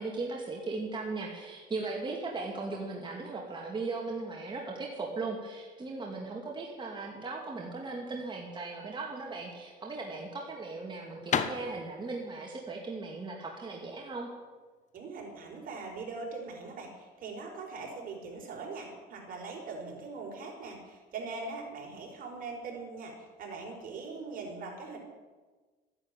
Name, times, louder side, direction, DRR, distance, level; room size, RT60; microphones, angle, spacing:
voice 1, 0.0-14.3, right 3 dB, 30° right, -1 dB, 2.5 m, -38 dB
sound 1, 9.5-15.0, left 7 dB, 45° left, 1.3 m, -37 dB
voice 2, 14.9-25.0, right 4 dB, 55° right, 1 dB, 4.7 m, -41 dB
13.5 x 11.0 x 9.2 m, 1.3 s
cardioid pair, 110°, 17 cm